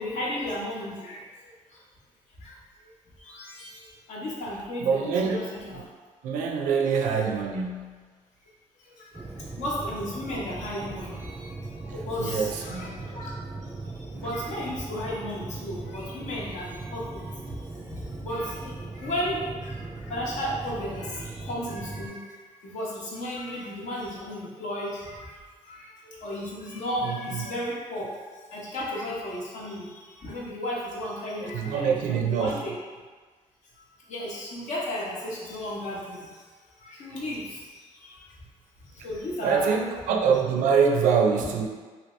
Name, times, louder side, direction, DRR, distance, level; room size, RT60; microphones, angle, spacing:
voice 1, 0.0-1.8 2.4-2.6 2.8-5.8 6.8-7.2 8.4-8.5 8.8-13.4 13.6-32.7 33.8-36.5 36.8-38.4 38.8-39.8, left 1 dB, 70° left, -5 dB, 1.0 m, -35 dB
voice 2, 4.8-5.4 6.2-8.0 12.2-13.0 27.1-27.4 31.5-32.5 39.4-41.7, right 6 dB, 85° right, 2 dB, 0.4 m, -24 dB
sound 1, 9.1-22.1, right 3 dB, 10° right, 0.3 m, -39 dB
2.8 x 2.7 x 3.1 m, 1.5 s
cardioid pair, 85°, 13 cm